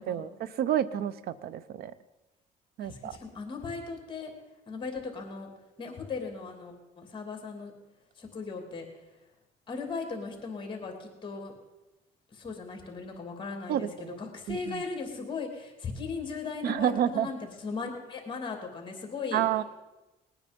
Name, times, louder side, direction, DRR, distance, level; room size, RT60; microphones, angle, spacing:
voice 1, 0.0-1.9 2.8-3.1 13.7-14.2 14.5-14.8 16.6-17.3 19.3-19.6, right 10 dB, 65° right, 17 dB, 0.7 m, -29 dB
voice 2, 2.8-4.3 4.7-5.5 5.8-7.7 8.2-9.1 9.7-11.5 12.3-19.4, left 4 dB, 30° left, 3 dB, 2.9 m, -38 dB
19.5 x 9.5 x 5.3 m, 1.1 s
cardioid pair, 110°, 17 cm